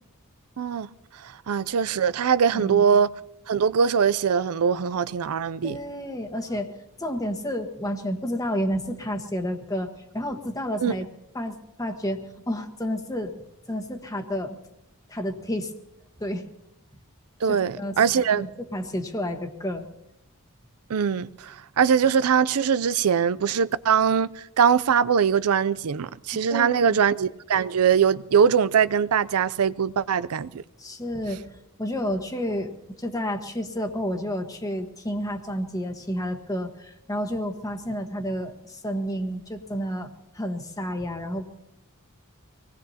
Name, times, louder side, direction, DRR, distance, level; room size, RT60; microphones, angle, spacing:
voice 1, 0.6-0.9 1.2-3.1 3.5-5.8 10.8-11.0 17.4-18.5 20.9-30.6, right 7 dB, 85° right, 0.5 m, -22 dB
voice 2, 2.5-3.0 5.6-11.1 11.3-13.4 13.7-14.6 15.1-15.7 16.2-16.5 17.5-18.0 18.4-19.8 26.5-27.0 30.8-31.5 31.8-32.7 33.0-41.5, equal, 15° left, 1.4 m, -30 dB
25.0 x 19.0 x 2.9 m
head